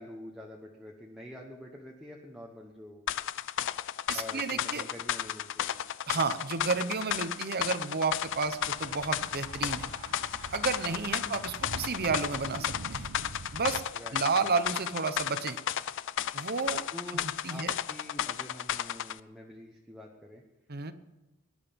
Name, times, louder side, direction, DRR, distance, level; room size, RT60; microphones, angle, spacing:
voice 1, 0.0-3.1 4.1-5.8 10.9-11.4 13.9-14.5 16.9-20.4, left 1 dB, ahead, -2 dB, 1.1 m, -47 dB
sound 1, 3.1-19.2, left 10 dB, 55° left, 0.5 m, -34 dB
voice 2, 4.1-4.8 6.1-9.8 10.5-13.1 13.5-13.8 14.1-15.6 16.3-16.8 17.2-17.7 20.7-20.9, right 4 dB, 45° right, 11 dB, 0.9 m, -31 dB
Thunder / Bicycle, 8.1-13.8, right 3 dB, 75° right, 1.0 m, -45 dB
18.5 x 11.0 x 5.3 m, 1.1 s
head